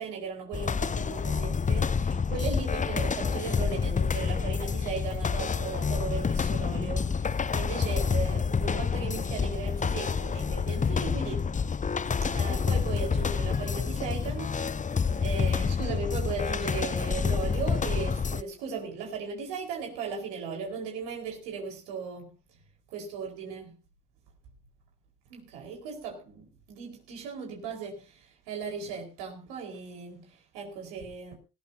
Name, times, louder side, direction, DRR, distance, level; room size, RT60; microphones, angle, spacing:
voice 1, 0.0-11.5 12.2-14.6 14.8-22.3 22.9-23.7 25.3-31.3, right 5 dB, 75° right, 4.9 m, -37 dB
sound 1, 0.5-18.4, left 5 dB, 15° left, 0.6 m, -28 dB
19.5 x 15.0 x 2.8 m
hypercardioid pair, 60°, 45 cm